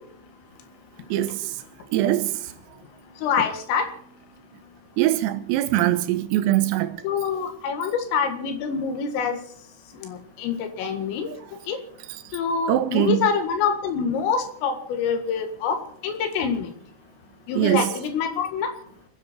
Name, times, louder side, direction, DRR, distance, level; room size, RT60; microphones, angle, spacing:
voice 1, 1.1-1.4 1.9-2.4 5.0-7.0 12.7-13.2 17.5-17.9, right 14 dB, 90° right, 3.8 m, -22 dB
voice 2, 3.2-3.9 7.0-9.4 10.0-11.3 11.7-11.8 12.3-15.8 16.0-16.7 17.5-18.7, left 6 dB, 75° left, 4.4 m, -25 dB
28.5 x 10.0 x 4.4 m
omnidirectional pair, 6.0 m